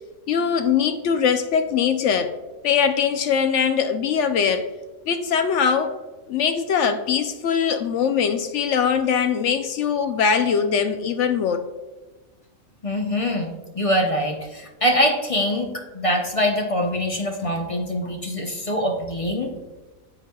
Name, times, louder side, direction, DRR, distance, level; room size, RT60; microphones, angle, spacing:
voice 1, 0.3-2.3 2.6-4.7 5.1-5.9 6.3-11.7, left 7 dB, 65° left, 8 dB, 0.8 m, -21 dB
voice 2, 12.8-19.5, equal, 30° left, 1 dB, 0.7 m, -24 dB
9.8 x 7.7 x 2.3 m, 1.2 s
omnidirectional pair, 1.6 m